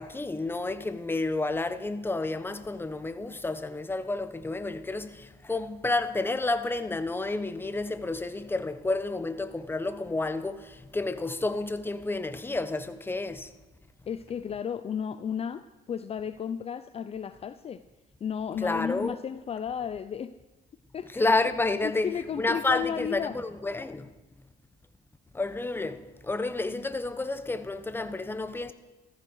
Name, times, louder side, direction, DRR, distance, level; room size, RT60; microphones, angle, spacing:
voice 1, 0.0-13.5 18.6-19.2 21.1-24.1 25.3-28.7, left 2 dB, 15° left, 1.1 m, -30 dB
voice 2, 14.1-17.8 18.2-20.3 20.9-21.3 21.8-23.4, left 8 dB, 35° left, 0.6 m, -33 dB
14.5 x 14.5 x 6.5 m
cardioid pair, 110°, 17 cm